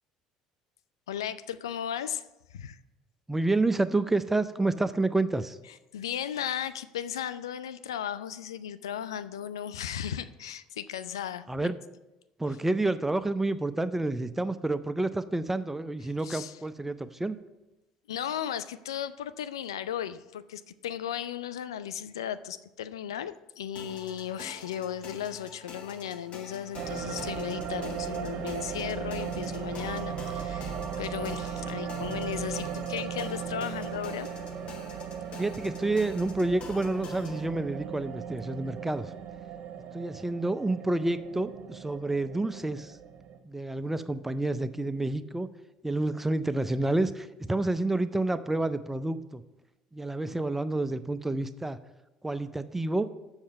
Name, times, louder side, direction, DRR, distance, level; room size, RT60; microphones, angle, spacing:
voice 1, 1.1-2.3 2.5-2.8 5.9-11.7 16.2-16.6 18.1-34.3, left 9 dB, 80° left, 14 dB, 0.3 m, -36 dB
voice 2, 3.3-5.6 11.5-11.7 12.4-17.4 35.4-39.1 39.9-43.0 43.4-45.5 45.8-49.4 49.9-51.8 52.2-53.1, right 2 dB, 10° right, 13 dB, 0.4 m, -29 dB
sound 1, 23.8-37.5, left 5 dB, 50° left, 1.1 m, -47 dB
sound 2, 26.7-43.4, right 7 dB, 50° right, 1.2 m, -37 dB
7.2 x 6.4 x 5.6 m, 0.99 s
hypercardioid pair, 65°, 2 cm